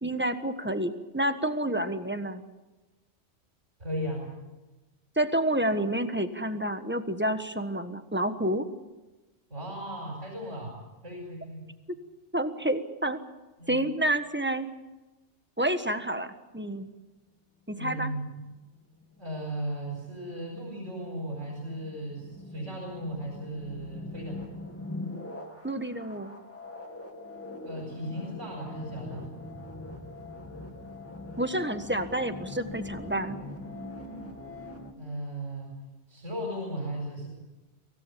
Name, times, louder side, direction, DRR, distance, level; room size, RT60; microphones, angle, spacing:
voice 1, 0.0-2.4 5.2-8.6 12.3-13.2 13.7-14.7 15.6-16.9 17.7-18.1 25.6-26.3 31.4-33.4, right 1 dB, 10° right, 9 dB, 1.3 m, -29 dB
voice 2, 3.8-4.3 9.5-10.8 11.0-11.6 13.6-13.8 17.7-18.4 19.2-24.4 27.6-29.3 35.0-35.7 36.1-37.3, right 1 dB, 85° right, -1 dB, 5.5 m, -36 dB
sound 1, 18.5-34.9, left 2 dB, 10° left, 2.5 m, -42 dB
24.0 x 17.0 x 8.5 m, 1.1 s
omnidirectional pair, 1.2 m